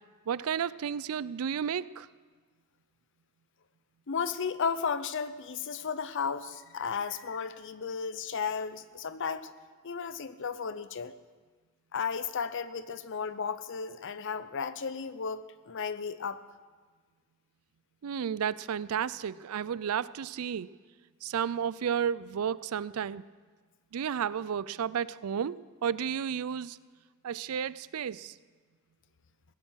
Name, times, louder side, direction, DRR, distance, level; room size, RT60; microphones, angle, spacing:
voice 1, 0.3-2.1 18.0-20.7 21.2-23.2 23.9-26.8 27.2-28.3, right 8 dB, 90° right, 19 dB, 0.4 m, -32 dB
voice 2, 4.1-9.5 9.8-11.1 11.9-16.4, left 6 dB, 60° left, 14 dB, 0.7 m, -34 dB
17.0 x 11.0 x 6.3 m, 1.5 s
head